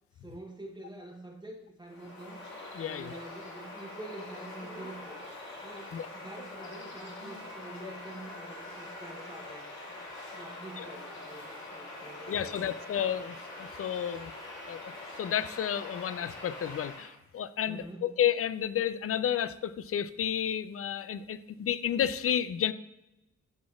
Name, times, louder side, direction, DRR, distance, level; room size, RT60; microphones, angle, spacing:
voice 1, 0.2-2.4 2.8-5.2 5.6-10.0 10.3-12.7 13.0-13.1 17.7-18.1, right 2 dB, 15° right, 0 dB, 1.0 m, -47 dB
Bird vocalization bird call bird song, 1.9-17.1, left 2 dB, 70° left, 2.1 m, -44 dB
voice 2, 2.8-3.2 5.9-6.1 10.8-10.9 12.3-14.3 14.7-22.7, left 9 dB, 50° left, 15 dB, 0.4 m, -31 dB
12.5 x 4.2 x 2.4 m, 0.91 s
cardioid pair, 75°, 29 cm